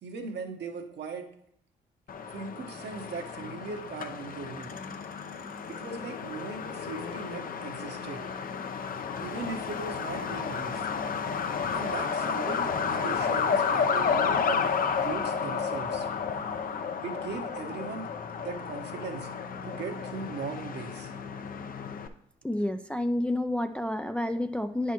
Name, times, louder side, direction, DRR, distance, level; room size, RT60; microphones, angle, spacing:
voice 1, 0.0-1.3 2.3-4.8 5.7-8.3 9.2-10.9 11.7-14.7 15.0-16.1 17.0-18.1 18.4-19.3 19.6-21.1, right 4 dB, 60° right, 3 dB, 1.1 m, -39 dB
Truck, 2.1-22.1, left 6 dB, 50° left, 0.6 m, -32 dB
voice 2, 22.4-24.9, left 1 dB, 5° left, 7 dB, 0.4 m, -29 dB
9.1 x 6.2 x 3.0 m, 0.71 s
supercardioid pair, 55°, 19 cm